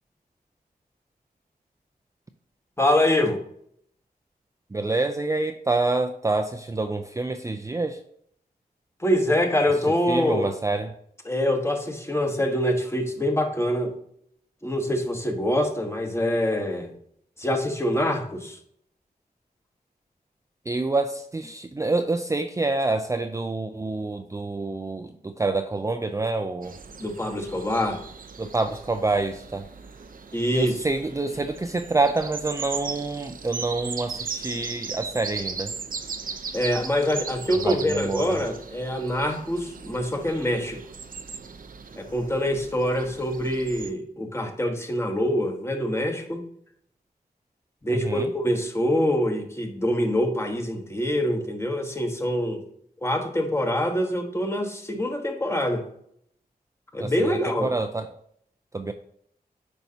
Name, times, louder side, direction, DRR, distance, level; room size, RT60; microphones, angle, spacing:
voice 1, 2.8-3.4 9.0-10.5 11.3-13.9 14.6-16.9 17.4-18.6 27.0-28.0 30.3-30.7 34.5-34.6 36.5-40.8 42.0-46.5 47.8-52.6 53.0-55.8 56.9-57.7, left 1 dB, 15° left, 4 dB, 1.2 m, -25 dB
voice 2, 4.7-8.0 9.9-10.9 20.7-26.8 28.4-29.7 30.5-35.7 37.6-38.4 47.9-48.3 57.0-58.1 58.7-58.9, right 3 dB, 20° right, 6 dB, 0.4 m, -27 dB
sound 1, 26.6-43.9, right 5 dB, 60° right, 0.7 m, -38 dB
9.0 x 5.4 x 2.8 m, 0.68 s
wide cardioid pair, 85°, 16 cm